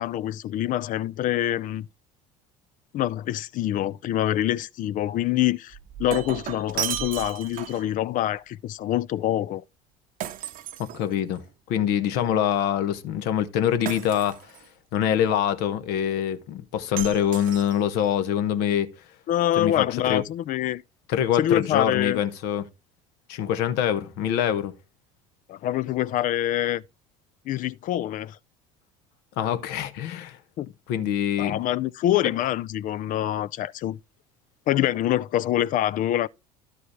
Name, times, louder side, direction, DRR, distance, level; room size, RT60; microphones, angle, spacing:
voice 1, 0.0-1.9 2.9-9.6 12.2-12.3 19.3-20.8 21.4-22.2 23.4-23.5 25.5-26.8 27.5-28.4 30.6-30.7 31.4-34.0 34.7-36.3, left 12 dB, 50° left, 0.5 m, -25 dB
Shatter, 5.7-7.9 10.2-11.5 13.9-14.7 17.0-18.1, right 11 dB, 50° right, 0.8 m, -34 dB
voice 2, 10.8-11.4 11.7-14.4 14.9-18.9 19.6-20.2 21.1-22.6 23.3-24.7 29.4-30.4 30.9-31.6, left 9 dB, 65° left, 1.1 m, -24 dB
11.5 x 4.8 x 4.8 m
hypercardioid pair, 75°, 18 cm